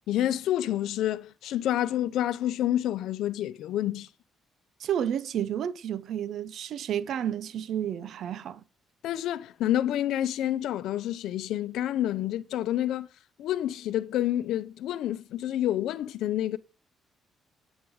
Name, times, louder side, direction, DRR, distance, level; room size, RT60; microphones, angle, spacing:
voice 1, 0.1-4.1 9.0-13.1 13.4-16.6, left 12 dB, 85° left, 0.7 m, -28 dB
voice 2, 4.8-8.6, right 9 dB, 70° right, 0.6 m, -31 dB
9.0 x 8.6 x 4.8 m
cardioid pair, 90°, 0 cm